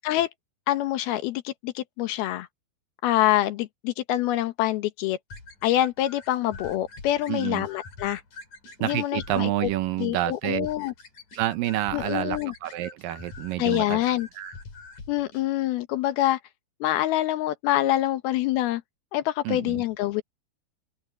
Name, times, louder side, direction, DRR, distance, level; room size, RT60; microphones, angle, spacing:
voice 1, 0.7-2.5 3.0-5.2 5.6-8.2 8.8-9.7 10.0-10.9 11.9-12.5 13.6-14.3 15.1-16.4 16.8-18.8 19.1-20.2, left 14 dB, 80° left, 3.0 m, -25 dB
sound 1, 5.3-15.4, left 4 dB, 55° left, 6.5 m, -45 dB
voice 2, 7.3-7.7 8.8-10.7 11.3-14.5 19.4-19.8, right 14 dB, 75° right, 2.4 m, -29 dB
open air
omnidirectional pair, 4.4 m